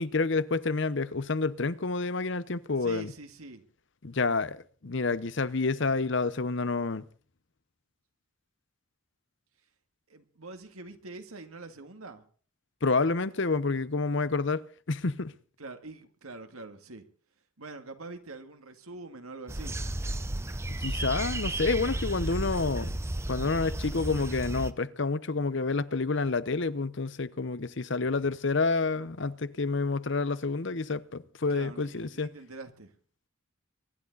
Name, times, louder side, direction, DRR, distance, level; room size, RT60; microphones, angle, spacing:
voice 1, 0.0-3.1 4.0-7.0 12.8-15.3 20.7-23.0 23.3-32.3, left 3 dB, 60° left, 0.8 m, -29 dB
voice 2, 2.8-3.6 10.1-12.2 15.6-17.0 17.6-19.8 31.5-32.9, right 2 dB, 85° right, 2.0 m, -44 dB
sound 1, 19.5-24.7, right 1 dB, 10° right, 0.6 m, -33 dB
24.0 x 11.0 x 4.0 m
head